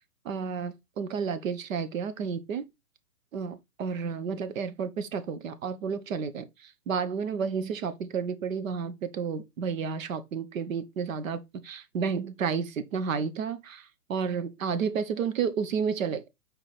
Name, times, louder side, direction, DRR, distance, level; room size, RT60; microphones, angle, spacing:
voice 1, 0.2-2.7 3.3-16.3, right 6 dB, 55° right, 1.1 m, -31 dB
4.9 x 4.2 x 4.8 m
hypercardioid pair, 140°, 47 cm